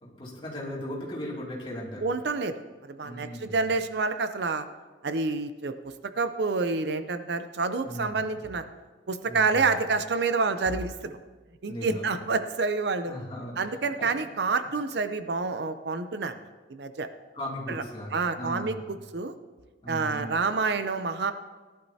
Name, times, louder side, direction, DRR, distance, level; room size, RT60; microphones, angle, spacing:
voice 1, 0.0-2.1 3.0-3.6 7.8-8.3 9.2-9.7 11.6-12.1 13.1-14.1 17.3-18.8 19.8-20.2, equal, 30° left, -4 dB, 2.5 m, -37 dB
voice 2, 2.0-2.6 2.8-4.7 5.0-8.6 9.1-11.2 11.6-13.1 13.6-16.4 16.7-17.1 17.7-17.8 18.1-19.3 19.9-21.3, right 4 dB, 70° right, 10 dB, 0.6 m, -28 dB
18.0 x 11.5 x 2.8 m, 1.3 s
head